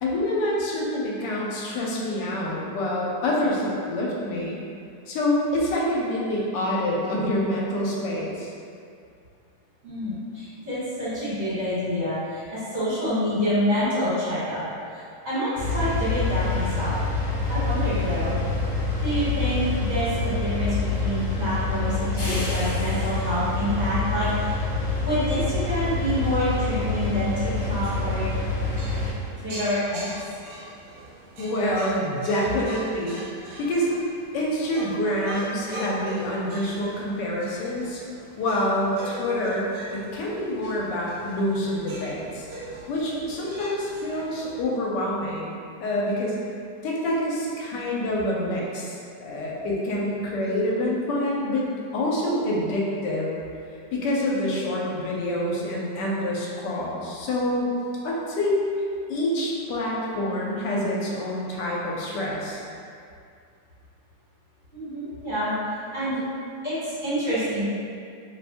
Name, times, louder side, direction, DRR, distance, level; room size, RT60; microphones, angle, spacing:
voice 1, 0.0-4.6 5.1-8.5 31.4-33.2 33.6-33.9 34.3-38.0 38.4-42.5 42.9-46.4 46.8-51.6 51.9-53.3 53.9-57.7 58.0-58.6 59.1-62.6, left 1 dB, 80° left, -4 dB, 1.2 m, -26 dB
voice 2, 9.8-14.6 14.9-17.0 17.5-18.4 19.0-20.7 21.0-24.6 25.0-28.3 29.4-30.1 64.7-65.5 65.9-66.2 66.6-67.7, equal, 45° right, -14 dB, 1.7 m, -27 dB
sound 1, 15.5-29.1, left 3 dB, 45° left, 0.7 m, -26 dB
sound 2, 27.4-44.6, right 1 dB, 75° right, 1.3 m, -41 dB
2.9 x 2.5 x 3.4 m, 2.4 s
omnidirectional pair, 1.9 m